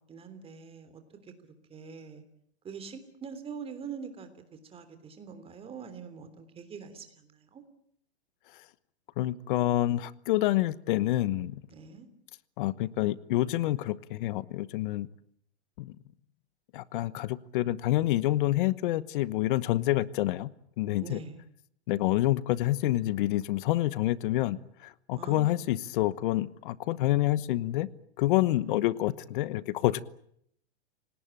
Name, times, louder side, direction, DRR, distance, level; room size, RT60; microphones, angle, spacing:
voice 1, 0.1-2.2 2.6-7.6 11.7-12.1 21.0-21.4 25.2-25.6 28.5-28.8, right 6 dB, 15° right, 9 dB, 3.3 m, -44 dB
voice 2, 9.2-11.6 12.6-15.1 15.8-15.9 16.7-20.5 20.8-21.2 21.9-27.9 28.2-30.0, left 15 dB, 50° left, 18 dB, 1.1 m, -27 dB
28.5 x 18.5 x 9.0 m, 0.70 s
hypercardioid pair, 145°, 32 cm